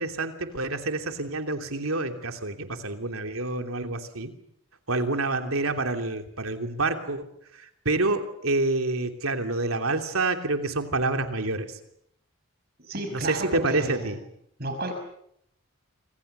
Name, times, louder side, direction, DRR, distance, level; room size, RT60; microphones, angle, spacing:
voice 1, 0.0-4.3 4.9-11.7 13.1-14.2, right 2 dB, 80° right, 6 dB, 3.0 m, -28 dB
voice 2, 12.9-14.1 14.6-15.0, right 1 dB, 45° right, 4 dB, 6.0 m, -32 dB
27.0 x 26.5 x 6.8 m, 0.74 s
head